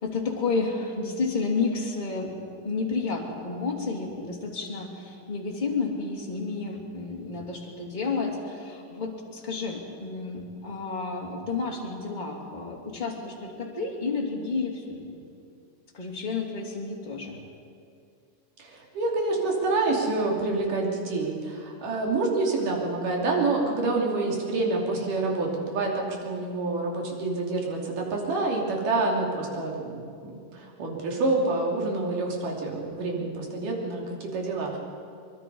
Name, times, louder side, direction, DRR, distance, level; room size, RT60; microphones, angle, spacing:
voice 1, 0.0-2.3 2.6-15.2 15.9-17.3, left 4 dB, 15° left, -2 dB, 2.6 m, -31 dB
voice 2, 18.6-30.0 30.5-34.8, right 3 dB, 70° right, -1 dB, 4.5 m, -27 dB
23.5 x 23.5 x 5.5 m, 2.4 s
omnidirectional pair, 3.9 m